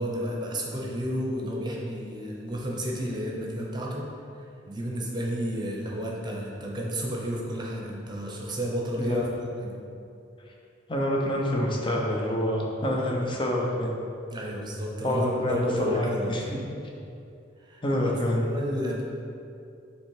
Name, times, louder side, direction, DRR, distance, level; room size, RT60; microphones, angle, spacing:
voice 1, 0.0-4.1 4.7-9.8 14.3-16.5 17.6-18.0 18.4-19.0, equal, 25° right, -2 dB, 0.9 m, -31 dB
voice 2, 9.0-9.3 10.9-13.9 15.0-16.6 17.8-18.5, left 1 dB, 25° left, -2 dB, 0.8 m, -27 dB
7.2 x 3.3 x 4.9 m, 2.6 s
head